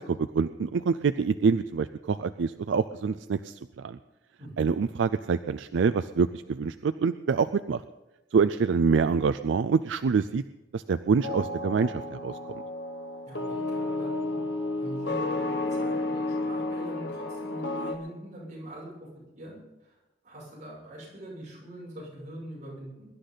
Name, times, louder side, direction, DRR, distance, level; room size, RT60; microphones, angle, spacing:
voice 1, 0.0-4.0 4.6-7.8 8.3-10.4 10.7-12.4, right 5 dB, 75° right, 11 dB, 0.4 m, -26 dB
sound 1, 11.2-18.0, left 2 dB, 65° left, 1.3 m, -31 dB
voice 2, 13.3-14.4 14.8-18.9 19.3-20.0 20.2-23.1, right 1 dB, 40° right, -5 dB, 7.0 m, -43 dB
23.0 x 11.5 x 4.0 m, 1.0 s
head